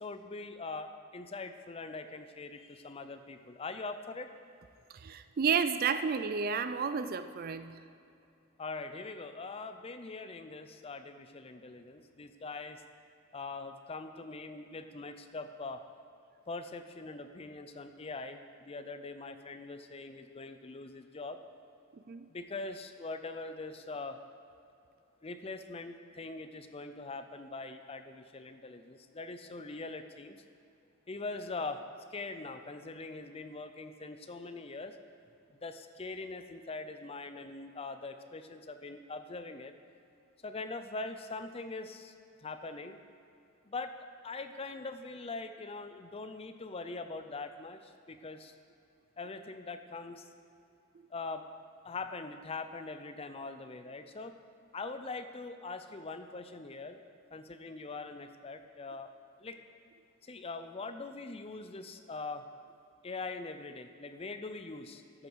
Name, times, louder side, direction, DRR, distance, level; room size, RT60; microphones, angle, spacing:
voice 1, 0.0-4.3 8.6-12.8 13.3-15.8 16.5-21.4 22.3-24.2 25.2-30.4 31.1-31.8 32.1-35.0 35.5-39.7 40.4-42.1 42.4-43.0 43.7-43.9 44.2-48.5 49.2-50.3 51.1-51.4 51.8-54.3 54.7-57.0 57.3-59.1 59.4-59.6 60.2-62.4 63.0-65.3, left 3 dB, 25° left, 8 dB, 0.5 m, -42 dB
voice 2, 4.9-7.8 22.1-22.3, right 6 dB, 40° right, 11 dB, 0.4 m, -31 dB
13.5 x 7.9 x 4.7 m, 2.6 s
head